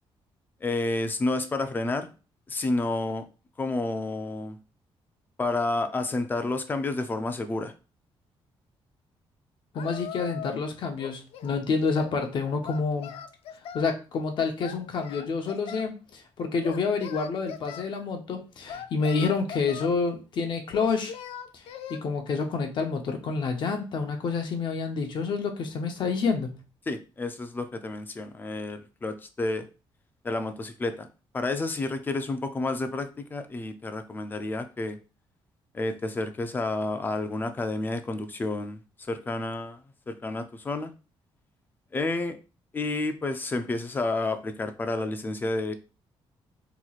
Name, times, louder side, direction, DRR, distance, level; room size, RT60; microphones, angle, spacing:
voice 1, 0.6-2.1 2.5-3.2 3.6-4.6 5.4-7.7 26.9-29.7 30.2-31.1 31.3-35.0 35.7-38.8 39.1-39.8 40.1-40.9 41.9-42.4 42.7-45.7, left 2 dB, 20° left, 8 dB, 0.4 m, -30 dB
Singing, 9.7-10.7 11.0-12.2 12.6-13.9 14.6-15.9 16.6-17.9 18.7-20.0 20.7-22.0, left 8 dB, 85° left, 0.4 m, -40 dB
voice 2, 9.7-13.1 13.7-21.1 21.5-21.6 21.9-26.6, left 4 dB, 50° left, 4 dB, 0.7 m, -28 dB
4.3 x 3.0 x 2.4 m, 0.32 s
cardioid pair, 165°, 10 cm